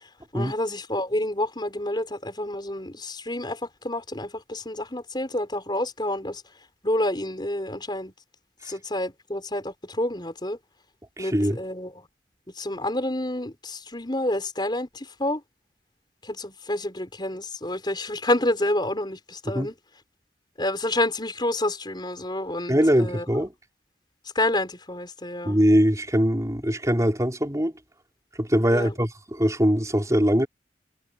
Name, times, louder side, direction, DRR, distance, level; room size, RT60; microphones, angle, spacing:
voice 1, 0.3-3.6 3.8-6.4 6.8-8.1 8.7-10.6 11.2-11.9 12.6-15.4 16.2-19.7 20.6-23.2 24.3-25.6 28.7-28.9, left 1 dB, 25° left, 5.6 m, -28 dB
voice 2, 11.2-11.6 19.5-19.7 22.7-23.5 25.4-27.7 28.4-30.5, equal, 20° right, 4.4 m, -22 dB
head